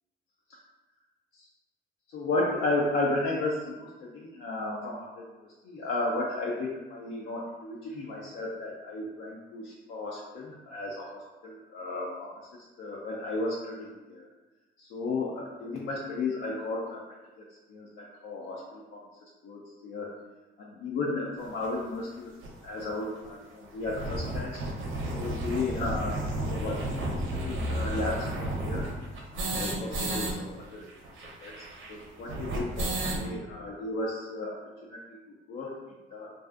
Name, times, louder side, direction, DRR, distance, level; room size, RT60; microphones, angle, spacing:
voice 1, 2.1-5.2 5.6-12.3 12.8-14.2 14.8-17.0 17.4-17.5 17.7-19.0 19.4-20.1 20.6-22.3 22.6-24.6 25.1-28.9 29.3-30.9 31.4-34.6 34.9-35.0 35.3-35.8 36.1-36.3, left 2 dB, 75° left, -4 dB, 0.4 m, -34 dB
sound 1, 21.6-21.7 22.4-22.5 22.8-22.9 23.2-23.3 23.6-30.3 30.6-30.7 30.9-33.3, right 1 dB, 80° right, 0.6 m, -32 dB
2.5 x 2.3 x 2.4 m, 1.2 s
cardioid pair, 90°, 20 cm